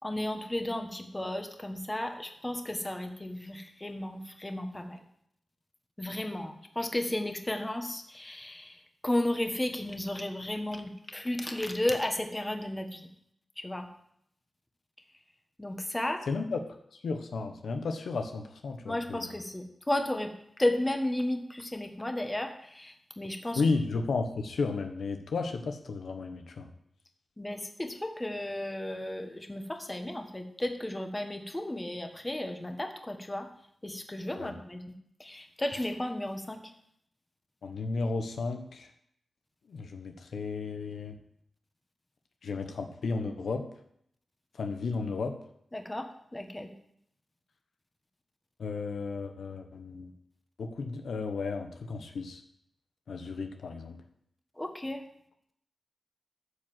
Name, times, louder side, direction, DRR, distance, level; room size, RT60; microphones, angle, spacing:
voice 1, 0.0-5.0 6.0-13.1 13.6-13.9 15.6-16.3 18.9-23.6 27.4-33.5 33.8-34.8 35.2-36.7 45.7-46.7 54.6-55.0, left 1 dB, 20° left, 5 dB, 1.5 m, -34 dB
voice 2, 16.3-16.6 17.0-19.3 23.5-26.7 34.4-34.5 37.6-38.9 39.7-41.2 42.4-43.6 44.6-45.4 48.6-50.1 50.6-52.4 53.1-54.0, left 4 dB, 85° left, 5 dB, 1.0 m, -33 dB
12.5 x 5.0 x 7.5 m, 0.71 s
cardioid pair, 70°, 0 cm